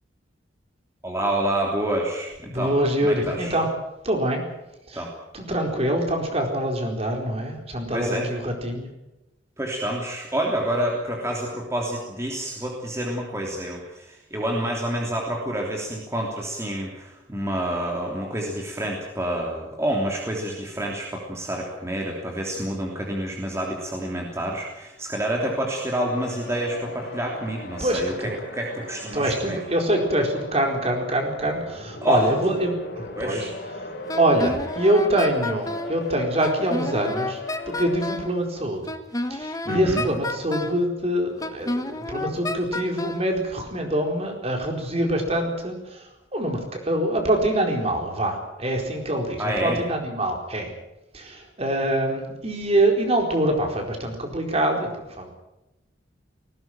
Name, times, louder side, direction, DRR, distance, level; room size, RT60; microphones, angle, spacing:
voice 1, 1.0-2.7 3.0-3.5 4.9-5.1 7.9-8.3 9.6-28.1 28.5-29.6 32.0-32.3 33.2-33.5 39.6-40.0 49.4-49.8, right 1 dB, 15° right, -1 dB, 3.2 m, -28 dB
voice 2, 2.5-3.7 4.0-4.4 4.9-5.0 5.3-8.9 27.8-28.4 29.1-33.4 34.2-37.4 37.7-38.8 39.3-46.0 46.3-50.7 51.1-55.3, right 1 dB, 35° right, 2 dB, 4.4 m, -24 dB
sound 1, 25.9-38.2, left 2 dB, 60° left, 5.2 m, -38 dB
Wind instrument woodwind instrument, 34.1-36.0 36.4-38.3 38.9-40.8 41.4-43.3, left 2 dB, 20° left, 1.5 m, -30 dB
19.5 x 17.5 x 9.1 m, 0.94 s
head